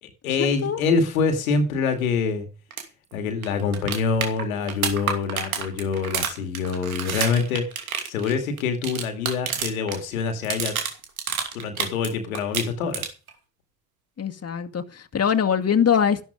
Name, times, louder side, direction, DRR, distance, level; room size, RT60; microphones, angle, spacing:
voice 1, 0.0-2.5 3.1-7.6 8.1-10.8 11.5-13.1, left 5 dB, 80° left, 2.4 m, -25 dB
sound 1, 2.7-2.8 3.1-3.2 3.4-10.0 10.3-12.1 12.3-13.3 15.4-15.5, right 7 dB, 85° right, 2.7 m, -29 dB
voice 2, 14.2-16.2, left 7 dB, 35° left, 2.1 m, -22 dB
14.5 x 12.0 x 5.2 m
hypercardioid pair, 50°, 41 cm